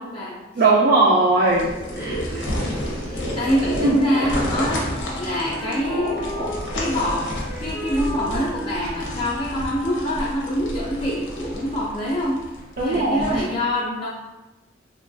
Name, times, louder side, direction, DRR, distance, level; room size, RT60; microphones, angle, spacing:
voice 1, 0.0-0.6 3.4-6.3 6.7-12.5 12.8-14.1, equal, 30° left, -6 dB, 0.3 m, -25 dB
voice 2, 0.6-2.5 3.8-4.1 12.8-13.5, right 2 dB, 55° right, -4 dB, 0.3 m, -19 dB
sound 1, 1.5-13.4, left 1 dB, 85° left, 0.7 m, -32 dB
sound 2, 1.6-8.5, equal, 90° right, 0.9 m, -33 dB
Wind instrument woodwind instrument, 4.8-10.6, left 1 dB, 10° left, 0.7 m, -35 dB
3.0 x 2.2 x 2.5 m, 1.1 s
head